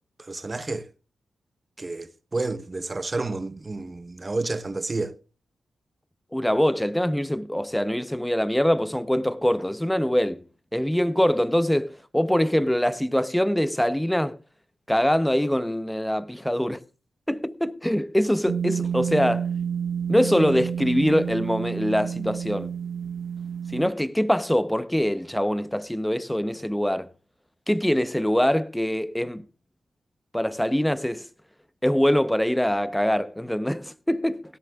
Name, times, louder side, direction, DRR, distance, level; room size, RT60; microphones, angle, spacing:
voice 1, 0.2-0.9 1.8-5.1, right 3 dB, 30° right, 1.0 m, -30 dB
voice 2, 6.3-10.4 10.7-14.4 14.9-16.8 17.3-19.5 20.1-22.7 23.7-27.1 27.7-29.5 30.3-31.2 31.8-34.4, equal, 5° left, 0.8 m, -23 dB
sound 1, 18.5-23.9, right 7 dB, 80° right, 0.6 m, -29 dB
17.5 x 15.0 x 2.4 m
cardioid pair, 55°, 0 cm